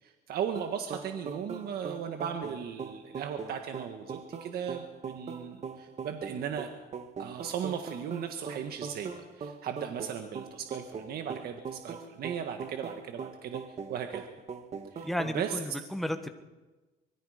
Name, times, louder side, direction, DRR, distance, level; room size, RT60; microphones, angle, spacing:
voice 1, 0.0-6.7 7.2-13.6 13.9-14.2 14.9-15.1 15.3-15.6, right 8 dB, 65° right, 5 dB, 1.7 m, -37 dB
sound 1, 0.5-15.6, right 5 dB, 40° right, 1.8 m, -41 dB
voice 2, 15.0-16.3, left 1 dB, ahead, 6 dB, 1.7 m, -33 dB
24.5 x 21.5 x 5.1 m, 1.2 s
cardioid pair, 110°, 17 cm